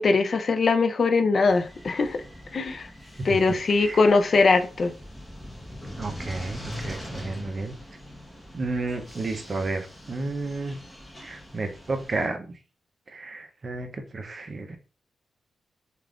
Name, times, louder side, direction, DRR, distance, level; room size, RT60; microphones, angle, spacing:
voice 1, 0.0-2.2 2.5-2.9 3.2-4.9, left 4 dB, 45° left, 8 dB, 0.4 m, -21 dB
sound 1, 1.4-12.3, left 1 dB, 10° left, 0.6 m, -42 dB
voice 2, 6.0-7.7 8.5-10.8 11.2-12.4 13.1-14.8, right 3 dB, 35° right, 6 dB, 0.5 m, -32 dB
2.3 x 2.3 x 3.3 m, 0.36 s
wide cardioid pair, 140°, 0 cm